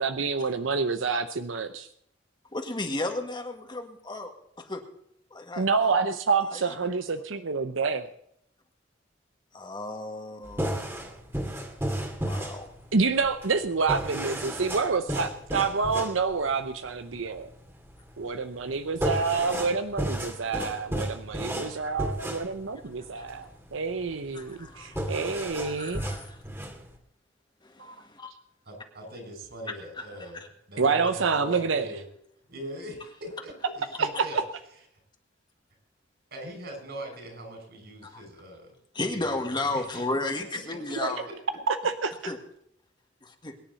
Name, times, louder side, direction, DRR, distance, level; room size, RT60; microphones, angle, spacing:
voice 1, 0.0-1.9 5.6-8.1 12.9-17.5 18.2-26.1 27.8-27.9 30.8-31.9 34.0-34.4 41.0-41.1 41.7-42.3, right 4 dB, 90° right, 10 dB, 0.8 m, -28 dB
voice 2, 2.5-4.8 5.3-5.7 6.5-6.6 9.5-10.9 12.3-12.7 23.2-23.3 24.3-25.0 25.7-26.4 27.6-28.3 30.0-30.3 38.0-38.3 38.9-41.3 42.3-42.4 43.2-43.5, left 2 dB, 25° left, 4 dB, 1.9 m, -34 dB
sound 1, 10.4-27.0, right 1 dB, 15° right, 2.2 m, -34 dB
voice 3, 28.6-30.4 30.7-32.0 32.5-34.4 36.3-38.8 39.1-40.8 41.1-41.3, equal, 60° right, 4 dB, 6.2 m, -41 dB
23.0 x 10.0 x 4.1 m, 0.72 s
head